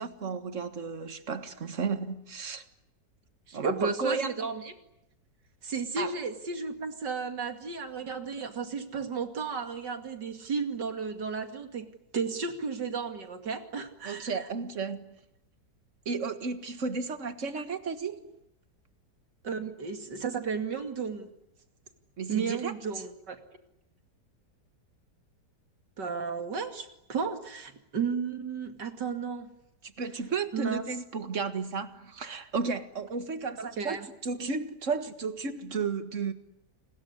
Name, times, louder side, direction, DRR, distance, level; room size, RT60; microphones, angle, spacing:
voice 1, 0.0-2.6 3.5-4.3 6.0-6.1 14.0-15.1 16.1-18.3 22.2-22.7 30.0-36.3, right 5 dB, 45° right, 1.9 m, -33 dB
voice 2, 3.5-4.7 5.6-11.9 12.1-14.4 19.4-21.3 22.3-23.4 26.0-29.5 30.5-30.8 33.6-34.1, right 5 dB, 70° right, 3.0 m, -33 dB
29.5 x 20.5 x 9.8 m
omnidirectional pair, 1.9 m